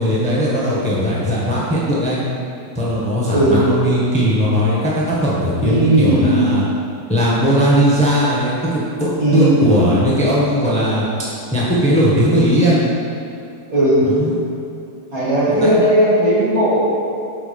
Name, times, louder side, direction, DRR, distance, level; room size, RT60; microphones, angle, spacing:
voice 1, 0.0-2.2 2.7-6.6 7.1-8.8 9.3-11.0 11.5-12.8 14.0-14.4 15.5-15.7, equal, 5° left, -7 dB, 1.5 m, -17 dB
voice 2, 5.6-6.4 9.2-9.6 13.7-14.0 15.1-16.8, right 1 dB, 55° right, -8 dB, 2.9 m, -15 dB
12.0 x 5.0 x 5.4 m, 2.6 s
omnidirectional pair, 1.9 m